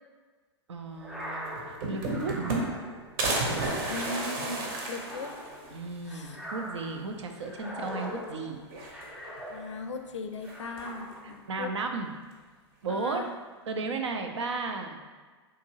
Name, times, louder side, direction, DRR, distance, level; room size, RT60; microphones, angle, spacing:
voice 1, 0.7-2.4 5.7-9.0 11.5-12.1 12.8-13.3 13.7-15.0, right 3 dB, 80° right, 4 dB, 0.5 m, -34 dB
sound 1, 0.9-10.0 10.4-11.5, equal, 5° right, 0.4 m, -42 dB
sound 2, 1.2-1.3 1.6-2.9 3.2-5.8 6.2-6.3 6.6-6.7 7.8-8.3 8.6-9.4 10.4-11.0, right 2 dB, 50° right, 0.8 m, -32 dB
voice 2, 3.9-5.3 6.1-6.4 7.6-8.0 9.5-11.7 12.9-13.3, left 3 dB, 85° left, 6 dB, 0.4 m, -39 dB
3.7 x 2.6 x 2.9 m, 1.4 s
hypercardioid pair, 105°, 15 cm